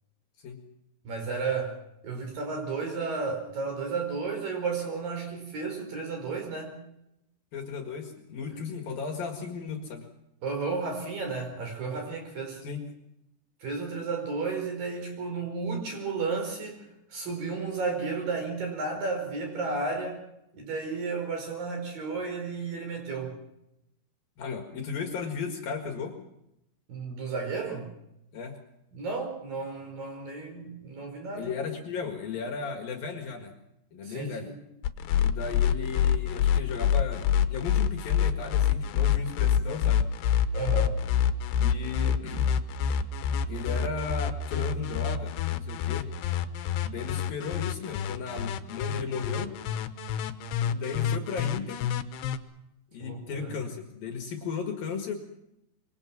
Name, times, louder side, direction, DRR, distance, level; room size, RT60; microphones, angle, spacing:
voice 1, 1.0-1.7 2.0-6.8 10.4-12.6 13.6-16.8 17.1-20.2 20.5-23.3 26.9-27.9 28.9-31.5 34.0-34.5 40.5-41.0 53.0-53.5, right 4 dB, 50° right, 3 dB, 6.4 m, -33 dB
voice 2, 7.5-10.1 12.6-12.9 24.4-26.2 28.3-28.6 31.3-33.5 33.9-34.5 35.2-40.0 41.6-42.5 43.3-46.1 46.8-49.6 50.6-51.9 52.9-55.1, left 5 dB, 55° left, 3 dB, 3.3 m, -35 dB
sound 1, 34.8-52.4, left 9 dB, 70° left, 3.0 m, -27 dB
26.0 x 23.5 x 6.1 m, 0.84 s
omnidirectional pair, 5.3 m